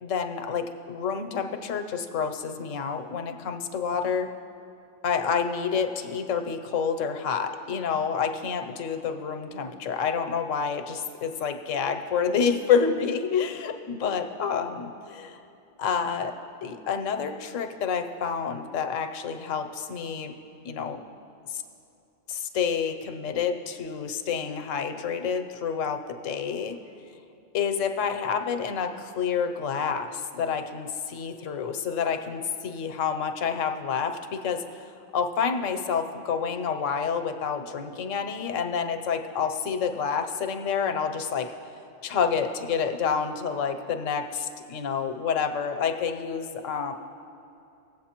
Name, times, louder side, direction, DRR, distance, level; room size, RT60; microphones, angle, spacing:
voice 1, 0.0-4.3 5.0-15.4 15.8-16.3 16.6-20.4 20.6-21.0 21.5-21.6 22.3-26.7 27.5-34.8 35.1-41.5 42.0-46.9, left 6 dB, 85° left, 6 dB, 1.0 m, -28 dB
18.5 x 8.0 x 2.9 m, 2.7 s
omnidirectional pair, 1.3 m